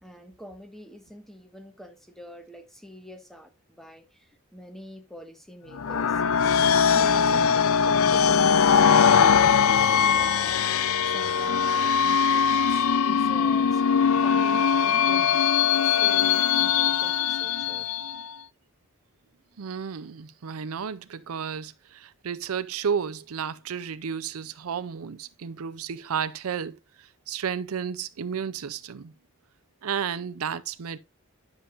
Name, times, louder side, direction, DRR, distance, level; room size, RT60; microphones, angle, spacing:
voice 1, 0.0-6.2 6.9-10.6 11.0-13.8 14.2-15.5 15.8-17.9, left 1 dB, ahead, 1.4 m, -45 dB
sound 1, 5.7-18.3, left 7 dB, 75° left, 0.5 m, -21 dB
voice 2, 19.6-29.1 29.8-31.0, right 7 dB, 85° right, 0.5 m, -32 dB
10.0 x 6.9 x 2.5 m
head